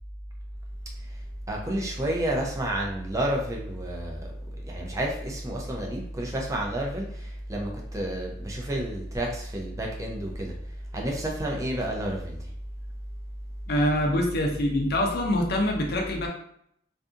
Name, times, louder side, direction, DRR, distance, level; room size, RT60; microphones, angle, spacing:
voice 1, 1.5-4.3 4.7-10.5 10.9-12.5, right 1 dB, 15° right, -1 dB, 0.4 m, -30 dB
voice 2, 13.7-16.3, left 1 dB, 55° left, 1 dB, 0.5 m, -25 dB
2.6 x 2.5 x 2.3 m, 0.71 s
head